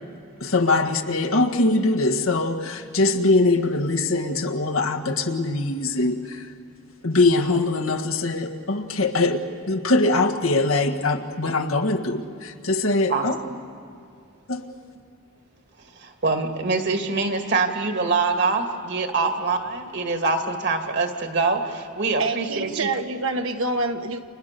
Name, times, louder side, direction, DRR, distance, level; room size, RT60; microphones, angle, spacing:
voice 1, 0.4-6.5 7.0-13.4 14.5-14.6, left 2 dB, 80° left, 1.6 m, -22 dB
voice 2, 13.1-13.5 16.0-22.9, right 3 dB, 55° right, 2.2 m, -24 dB
voice 3, 22.2-24.2, right 3 dB, 75° right, 1.4 m, -26 dB
30.0 x 26.0 x 6.8 m
head